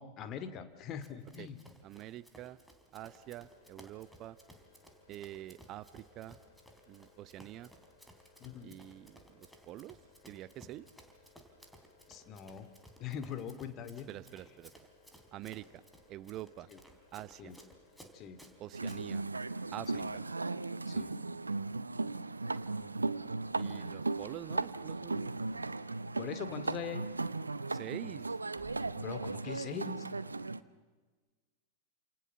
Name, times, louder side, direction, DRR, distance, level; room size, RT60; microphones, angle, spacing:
voice 1, 0.0-1.6 8.4-8.8 12.1-12.7 13.0-14.1 16.7-16.8 17.4-17.6 18.1-18.4 19.9-20.1 20.9-21.1 26.2-27.1 29.0-30.1, left 8 dB, 35° left, 10 dB, 2.4 m, -42 dB
Run, 1.0-19.0, right 1 dB, ahead, 3.7 m, -59 dB
voice 2, 1.8-2.6 2.9-4.4 5.1-6.4 6.9-7.7 8.6-10.0 10.3-10.9 14.1-14.7 15.3-15.8 16.1-16.7 17.1-17.5 18.6-19.2 19.7-20.2 23.5-25.3 27.7-28.3, right 14 dB, 35° right, 17 dB, 0.8 m, -46 dB
sound 1, 2.9-19.2, left 4 dB, 55° left, 5.7 m, -65 dB
sound 2, 18.7-30.6, right 3 dB, 80° right, 0.8 m, -37 dB
29.5 x 27.5 x 7.1 m, 1.4 s
figure-of-eight pair, 90°, 0 cm